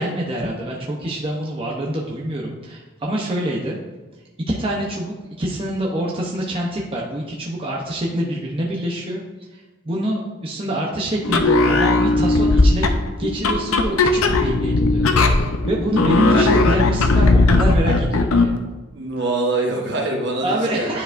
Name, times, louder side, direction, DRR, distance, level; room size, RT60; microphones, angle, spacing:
voice 1, 0.0-3.8 4.5-9.2 9.5-12.9 13.2-18.5 20.4-21.0, right 1 dB, 25° right, -3 dB, 0.7 m, -25 dB
sound 1, 11.2-18.6, left 3 dB, 85° left, 0.6 m, -17 dB
voice 2, 16.2-16.6 18.9-21.0, right 2 dB, 55° right, 1 dB, 1.1 m, -24 dB
10.5 x 4.7 x 2.5 m, 1.2 s
head